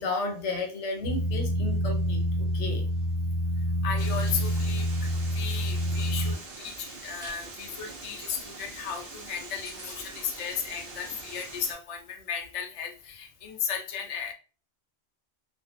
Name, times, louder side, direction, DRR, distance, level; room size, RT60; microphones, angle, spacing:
voice 1, 0.0-2.8 6.1-6.2, left 2 dB, 85° left, 1.0 m, -33 dB
sound 1, 1.0-6.3, equal, 25° left, 0.7 m, -27 dB
voice 2, 3.8-14.3, left 7 dB, 55° left, 0.4 m, -35 dB
sound 2, 4.0-11.8, right 3 dB, 60° right, 0.8 m, -44 dB
Chewing mastication, 4.2-4.3 4.8-6.3 6.9-7.4 7.7-7.9 8.3-8.4 8.6-8.7 9.1-9.2 9.3-9.4 9.6-10.0, equal, 15° right, 1.2 m, -48 dB
2.5 x 2.1 x 2.5 m
omnidirectional pair, 1.2 m